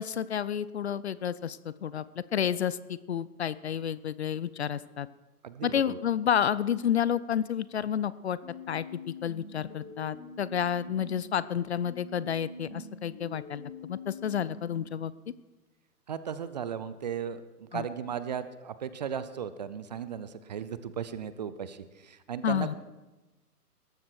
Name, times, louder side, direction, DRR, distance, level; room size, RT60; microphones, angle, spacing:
voice 1, 0.0-5.1 5.6-8.4 8.7-8.8 9.2-15.1 17.7-17.8 22.4-22.7, left 9 dB, 45° left, 18 dB, 0.6 m, -30 dB
voice 2, 5.4-6.0 16.1-22.8, right 8 dB, 30° right, 14 dB, 0.6 m, -36 dB
sound 1, 8.4-11.4 11.8-14.9, left 2 dB, 30° left, 3.2 m, -45 dB
18.5 x 14.5 x 4.7 m, 1.1 s
figure-of-eight pair, 135°, 47 cm